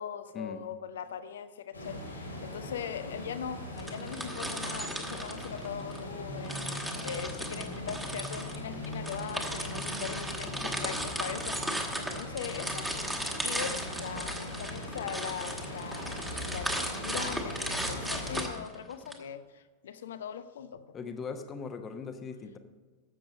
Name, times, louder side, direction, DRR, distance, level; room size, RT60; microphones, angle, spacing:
voice 1, 0.0-12.9 13.4-21.0, left 8 dB, 60° left, 12 dB, 0.7 m, -40 dB
sound 1, 1.7-18.4, left 1 dB, 85° left, 2.6 m, -40 dB
sound 2, 3.8-6.0 6.4-19.1, right 1 dB, 5° right, 1.6 m, -36 dB
voice 2, 20.9-22.6, left 5 dB, 25° left, 7 dB, 1.1 m, -39 dB
13.0 x 7.8 x 5.2 m, 1.4 s
figure-of-eight pair, 90°, 0 cm